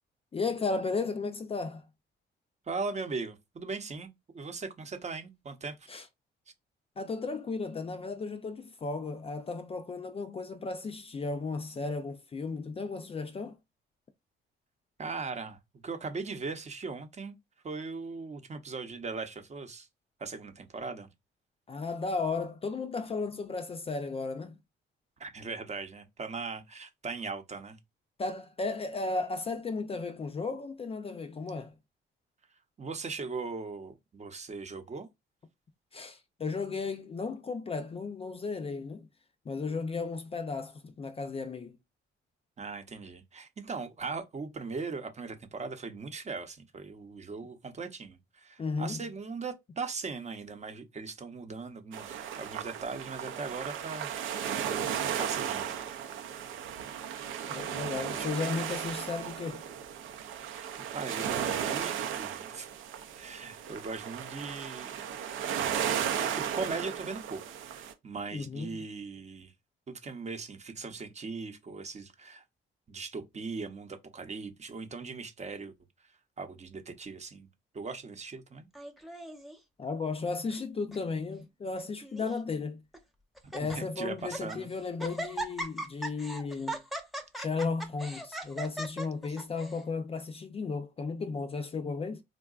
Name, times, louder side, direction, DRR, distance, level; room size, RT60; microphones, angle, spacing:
voice 1, 0.3-1.9 5.9-6.1 7.0-13.6 21.7-24.6 28.2-31.7 35.9-39.1 39.5-41.8 48.6-49.0 57.5-59.6 68.3-68.8 79.8-82.8 83.5-86.8 87.4-92.2, left 4 dB, 30° left, 0.4 m, -34 dB
voice 2, 2.7-4.1 4.3-5.8 15.0-15.6 15.8-17.3 17.6-19.9 20.2-21.1 25.2-27.8 32.8-35.1 42.6-54.1 55.2-55.8 57.9-58.3 60.7-62.7 63.1-65.1 66.3-67.4 67.7-69.5 69.9-72.4 72.9-75.7 76.4-77.5 77.7-78.7 83.8-84.7, right 4 dB, 35° right, 0.7 m, -39 dB
sound 1, 51.9-67.9, right 8 dB, 85° right, 0.6 m, -35 dB
Laughter, 78.7-79.6 80.3-80.6 80.9-81.0 81.8-82.4 82.9-83.0 83.4-83.8 84.2-84.6 85.0-89.8, right 1 dB, ahead, 0.7 m, -39 dB
3.7 x 2.2 x 2.4 m
cardioid pair, 90°, 20 cm